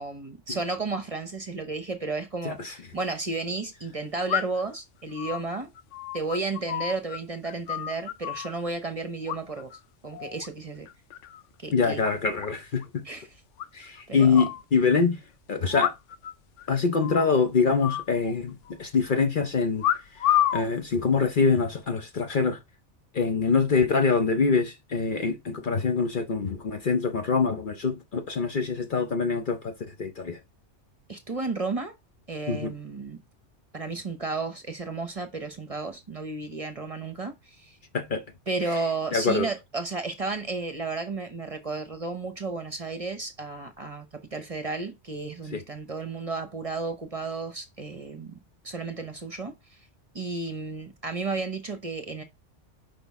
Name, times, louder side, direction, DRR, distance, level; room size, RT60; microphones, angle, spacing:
voice 1, 0.0-5.7 6.1-9.7 10.0-10.9 11.6-12.0 13.0-13.3 14.1-14.4 31.1-31.9 32.3-33.2 33.7-37.8 38.5-49.8 50.1-52.2, right 3 dB, 30° right, 1.0 m, -33 dB
sound 1, 2.5-2.6 4.3-4.7 5.2-7.2 7.4-8.5 9.3-9.8 10.1-10.5 10.9-11.4 11.7-11.8 12.0-12.1 12.4-12.5 12.8-12.9 13.6-14.6 15.7-16.3 16.6-16.7 17.0-17.3 17.8-18.7 19.8-20.7 21.4-21.8, left 12 dB, 80° left, 1.0 m, -29 dB
voice 2, 11.7-13.0 13.7-15.2 15.5-15.9 16.7-19.8 20.2-20.3 20.5-22.6 23.1-30.4 32.5-32.7 37.9-38.2 39.1-39.5 45.5-45.6, left 5 dB, 50° left, 0.9 m, -25 dB
6.0 x 5.2 x 3.6 m
omnidirectional pair, 1.2 m